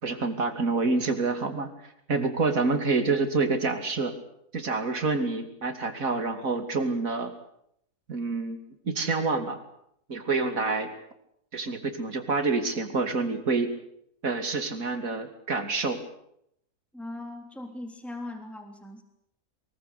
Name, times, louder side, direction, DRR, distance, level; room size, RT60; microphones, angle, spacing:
voice 1, 0.0-4.2 4.5-7.3 8.1-9.6 10.1-10.9 11.5-13.7 14.2-16.0, right 3 dB, 65° right, 8 dB, 3.2 m, -27 dB
voice 2, 16.9-19.0, left 2 dB, ahead, 5 dB, 3.2 m, -39 dB
23.5 x 22.0 x 8.4 m, 0.74 s
omnidirectional pair, 1.5 m